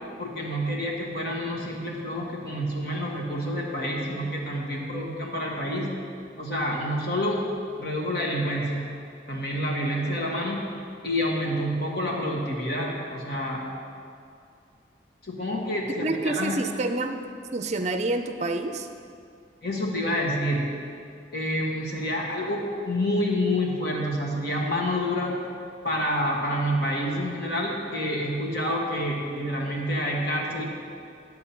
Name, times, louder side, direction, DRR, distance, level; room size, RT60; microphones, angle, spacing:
voice 1, 0.2-5.9 6.4-7.4 7.8-8.9 9.3-10.7 11.0-13.7 15.2-16.6 19.6-20.7 21.3-25.4 25.8-30.7, equal, 55° left, -2 dB, 1.5 m, -28 dB
voice 2, 16.0-17.2 17.5-18.9, right 2 dB, 35° right, 8 dB, 0.5 m, -28 dB
10.0 x 6.7 x 5.7 m, 2.4 s
head